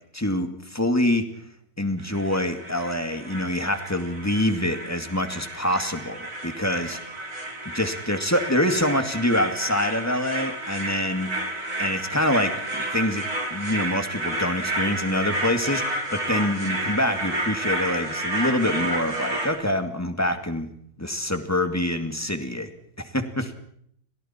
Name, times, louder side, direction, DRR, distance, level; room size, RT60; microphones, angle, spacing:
voice 1, 0.1-1.2 1.8-7.0 7.7-11.3 11.8-20.7 21.0-22.7 23.0-23.6, left 1 dB, 10° left, 6 dB, 2.3 m, -25 dB
sound 1, 2.0-19.5, right 1 dB, 75° right, 6.3 m, -31 dB
30.0 x 26.5 x 4.5 m, 0.68 s
omnidirectional pair, 1.6 m